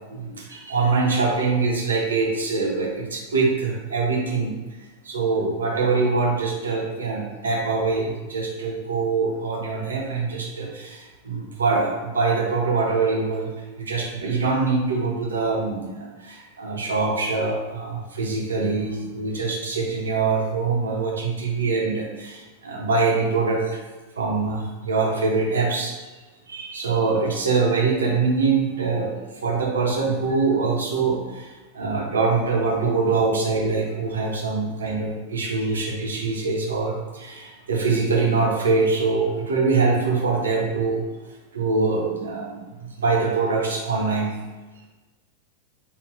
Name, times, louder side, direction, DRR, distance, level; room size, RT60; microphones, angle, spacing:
voice 1, 0.1-4.5 5.1-11.0 11.3-13.5 13.8-22.4 22.6-23.6 24.2-25.9 26.5-29.1 29.4-31.2 31.7-41.0 41.5-44.3, right 4 dB, 70° right, -1 dB, 0.8 m, -23 dB
5.0 x 2.4 x 2.5 m, 1.2 s
figure-of-eight pair, 90°, 0 cm